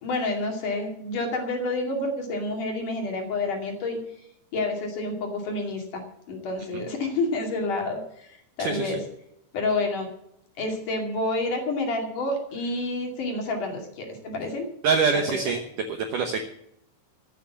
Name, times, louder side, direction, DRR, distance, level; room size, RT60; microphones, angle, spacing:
voice 1, 0.0-4.0 4.5-6.0 6.3-9.0 9.5-10.1 10.6-14.7 15.3-15.4, left 2 dB, 50° left, 2 dB, 3.4 m, -29 dB
voice 2, 8.6-9.0 14.8-15.6 15.9-16.4, right 5 dB, 90° right, 5 dB, 1.8 m, -24 dB
14.5 x 9.2 x 7.2 m, 0.77 s
omnidirectional pair, 5.5 m